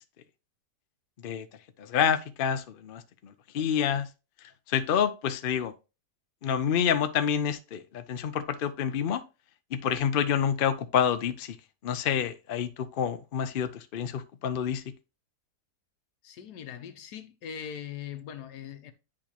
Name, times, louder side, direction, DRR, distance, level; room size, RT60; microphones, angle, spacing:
voice 1, 1.9-4.1 4.7-5.7 6.4-9.2 9.7-11.6 11.8-14.8, left 8 dB, 60° left, 0.5 m, -28 dB
voice 2, 16.2-18.9, left 8 dB, 80° left, 1.4 m, -41 dB
10.5 x 3.7 x 2.9 m
omnidirectional pair, 1.7 m